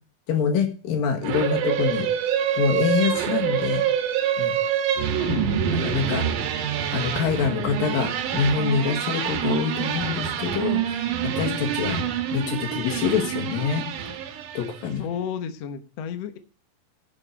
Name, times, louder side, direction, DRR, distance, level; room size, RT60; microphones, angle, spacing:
voice 1, 0.3-2.1 2.5-3.8 4.4-4.5 5.3-5.4 5.7-6.3 6.9-12.0 12.3-13.9 14.5-15.0, left 6 dB, 90° left, 4 dB, 3.4 m, -25 dB
sound 1, 1.2-14.9, right 9 dB, 70° right, 2.4 m, -26 dB
voice 2, 5.2-5.8 15.0-16.4, left 7 dB, 65° left, 8 dB, 1.7 m, -33 dB
9.9 x 5.7 x 7.9 m, 0.38 s
omnidirectional pair, 4.0 m